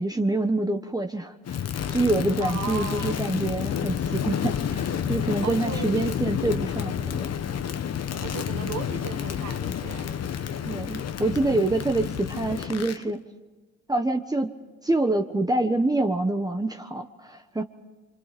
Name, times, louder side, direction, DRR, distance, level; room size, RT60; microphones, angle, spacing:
voice 1, 0.0-1.3 1.9-7.3 10.6-13.2 13.9-14.6 14.8-17.6, right 2 dB, 10° right, 1.2 m, -26 dB
Crackle, 1.5-13.0, left 8 dB, 55° left, 1.2 m, -30 dB
voice 2, 2.4-3.2 5.4-6.1 8.2-10.2, right 7 dB, 60° right, 1.2 m, -35 dB
28.5 x 24.0 x 5.2 m
cardioid pair, 90°, 30 cm